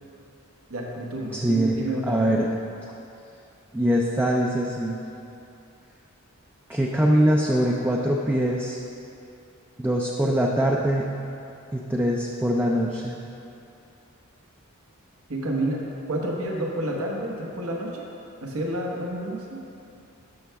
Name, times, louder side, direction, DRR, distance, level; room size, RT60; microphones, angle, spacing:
voice 1, 0.7-2.5 15.3-15.8 16.1-18.1 18.4-19.6, right 1 dB, 75° right, -1 dB, 1.2 m, -29 dB
voice 2, 1.3-1.8 2.1-2.5 3.7-5.0 6.7-8.8 9.8-11.1 11.7-13.2, equal, 10° right, -2 dB, 0.4 m, -23 dB
12.5 x 5.7 x 3.5 m, 2.8 s
head